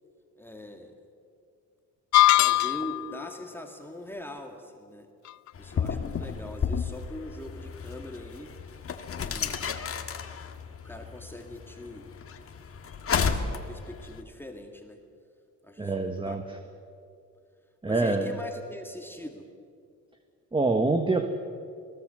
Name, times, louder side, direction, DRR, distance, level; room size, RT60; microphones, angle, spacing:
voice 1, 0.4-1.0 2.3-5.1 5.6-8.5 9.2-9.7 10.8-12.1 13.1-15.0 15.6-16.7 17.8-19.5, left 1 dB, 5° left, 3 dB, 2.2 m, -42 dB
sound 1, 2.1-3.1, left 15 dB, 70° left, 0.4 m, -20 dB
sound 2, 5.5-14.2, left 6 dB, 50° left, 1.8 m, -33 dB
voice 2, 15.8-16.6 17.8-18.4 20.5-21.3, right 3 dB, 15° right, 6 dB, 1.5 m, -26 dB
21.0 x 19.0 x 7.9 m, 2.3 s
cardioid pair, 90°, 30 cm